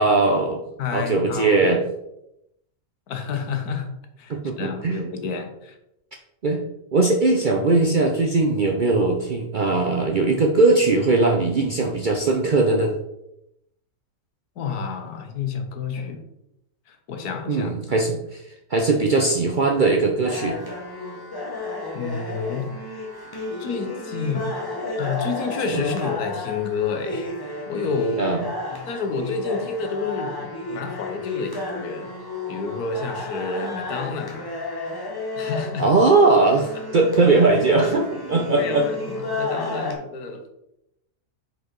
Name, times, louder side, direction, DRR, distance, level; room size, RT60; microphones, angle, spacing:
voice 1, 0.0-0.6 0.9-1.8 4.3-5.0 6.4-6.6 6.9-12.9 17.5-18.4 18.7-20.6 25.7-25.8 28.2-28.5 35.8-38.8, right 3 dB, 55° right, 2 dB, 0.5 m, -19 dB
voice 2, 0.8-1.7 3.1-3.9 4.2-5.8 14.6-16.3 16.9-17.7 21.9-22.7 23.6-24.5 25.0-27.3 27.7-28.3 28.9-32.1 32.5-34.5 35.3-36.0 36.7-37.0 37.8-38.0 38.5-40.5, left 5 dB, 90° left, 6 dB, 1.4 m, -29 dB
sound 1, 20.2-39.9, left 2 dB, 20° left, 0.8 m, -32 dB
4.9 x 4.8 x 4.6 m, 0.84 s
omnidirectional pair, 1.6 m